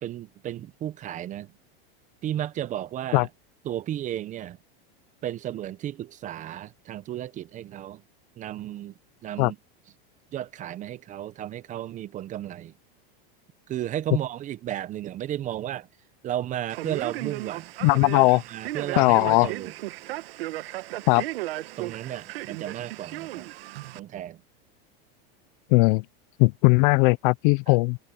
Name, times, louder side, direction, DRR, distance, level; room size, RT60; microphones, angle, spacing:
voice 1, 0.0-1.5 2.2-3.3 3.6-4.6 5.2-8.0 8.4-8.9 9.2-9.6 10.3-12.7 13.7-15.9 16.2-17.7 18.1-19.7 21.8-23.5 23.9-24.4 27.7-27.8, right 12 dB, 25° right, 0.6 m, -33 dB
Male speech man speaking, 16.7-24.0, right 17 dB, 75° right, 1.4 m, -35 dB
voice 2, 17.8-18.4 19.0-19.5 21.1-21.2 25.7-26.0 26.4-28.0, left 27 dB, 55° left, 0.6 m, -19 dB
supercardioid pair, 140°, 30 cm